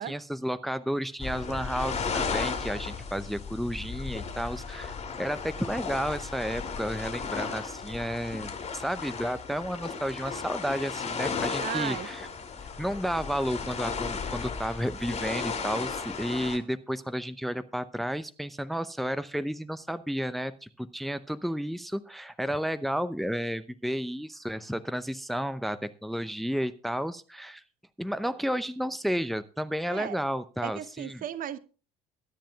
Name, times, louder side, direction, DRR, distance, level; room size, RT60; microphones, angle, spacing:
voice 1, 0.0-12.3 12.8-27.6 28.0-31.2, equal, ahead, 0.7 m, -32 dB
sound 1, 1.2-16.6, left 5 dB, 35° left, 2.8 m, -35 dB
voice 2, 11.6-12.1 29.9-30.2 30.6-31.6, right 10 dB, 45° right, 0.9 m, -35 dB
23.0 x 10.0 x 2.3 m
figure-of-eight pair, 55°, 20 cm